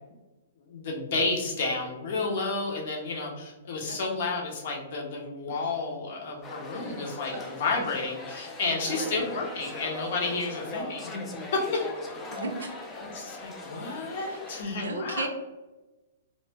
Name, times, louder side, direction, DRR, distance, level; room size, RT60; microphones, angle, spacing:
voice 1, 0.7-11.8 13.0-15.3, left 3 dB, 50° left, 0 dB, 0.7 m, -31 dB
sound 1, 6.4-14.6, left 2 dB, 20° left, 0.4 m, -40 dB
voice 2, 8.7-9.2 12.3-12.7 14.2-14.4 14.7-15.3, right 2 dB, 70° right, 4 dB, 0.5 m, -35 dB
2.5 x 2.1 x 3.2 m, 1.1 s
figure-of-eight pair, 110°, 0 cm